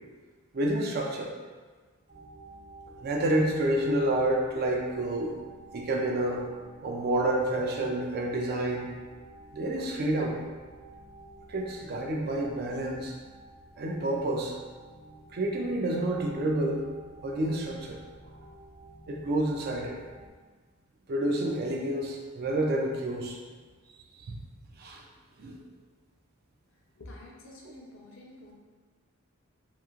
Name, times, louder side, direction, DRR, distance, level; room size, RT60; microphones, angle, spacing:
voice 1, 0.5-1.3 3.0-5.3 5.7-6.5 6.8-8.9 9.5-10.4 11.5-13.1 13.8-14.6 15.3-16.8 17.2-18.0 19.1-20.0 21.1-23.4 24.3-24.4 24.8-25.0 25.4-25.6, right 1 dB, 50° right, 0 dB, 0.4 m, -29 dB
sound 1, 2.1-20.3, right 2 dB, 70° right, 1.0 m, -51 dB
voice 2, 27.0-28.5, left 1 dB, 60° left, -2 dB, 0.5 m, -48 dB
2.9 x 2.8 x 2.4 m, 1.4 s
head